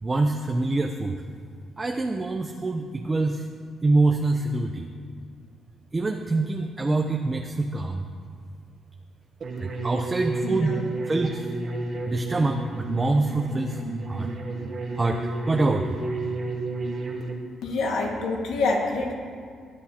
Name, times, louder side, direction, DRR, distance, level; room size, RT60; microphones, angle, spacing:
voice 1, 0.0-1.2 1.8-3.5 3.8-4.9 5.9-8.1 9.6-10.8 11.0-11.5 12.0-13.8 14.1-14.3 15.0-16.0, right 2 dB, 20° right, 4 dB, 0.6 m, -25 dB
sound 1, 9.4-17.3, right 3 dB, 50° right, 1.5 m, -32 dB
voice 2, 10.4-10.8 17.6-19.1, left 3 dB, 85° left, 0 dB, 1.8 m, -26 dB
23.0 x 8.6 x 2.9 m, 2.2 s
cardioid pair, 115°, 0 cm